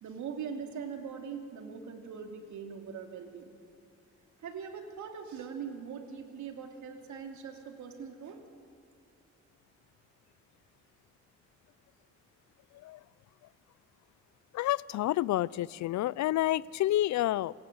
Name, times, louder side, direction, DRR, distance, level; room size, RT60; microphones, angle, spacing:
voice 1, 0.0-3.5 4.4-8.4, right 6 dB, 75° right, 2.9 m, -41 dB
voice 2, 14.5-17.5, left 14 dB, 70° left, 0.5 m, -29 dB
27.5 x 19.0 x 8.0 m
cardioid pair, 90°, 30 cm